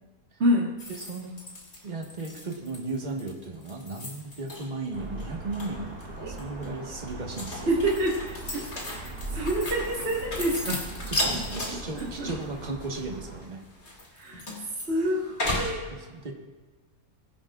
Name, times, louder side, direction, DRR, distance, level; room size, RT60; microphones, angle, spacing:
voice 1, 0.4-0.8 6.2-6.3 7.7-10.9 11.2-12.3 14.1-14.4 14.9-15.9, equal, 45° right, -4 dB, 1.9 m, -28 dB
sound 1, 0.8-4.9 5.2-6.0 6.4-15.7, left 1 dB, 45° left, 2.6 m, -35 dB
voice 2, 1.0-1.4 1.8-7.7 11.1-13.6 15.9-16.3, right 3 dB, 30° right, 1 dB, 1.5 m, -36 dB
sound 2, 4.9-13.4, right 2 dB, 70° right, 3.2 m, -40 dB
22.5 x 10.5 x 2.4 m, 1.3 s
omnidirectional pair, 1.6 m